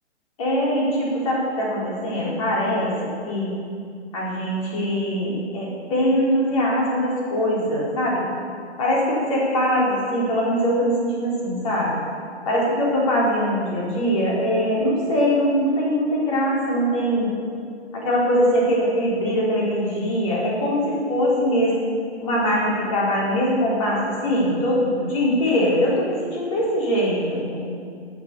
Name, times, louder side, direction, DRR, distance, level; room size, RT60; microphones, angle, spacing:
voice 1, 0.4-2.9 3.3-3.5 4.1-8.3 8.8-12.0 12.4-17.4 17.9-21.9 22.2-27.6, equal, 30° left, -5 dB, 4.4 m, -22 dB
19.0 x 7.8 x 7.0 m, 2.2 s
figure-of-eight pair, 140°, 34 cm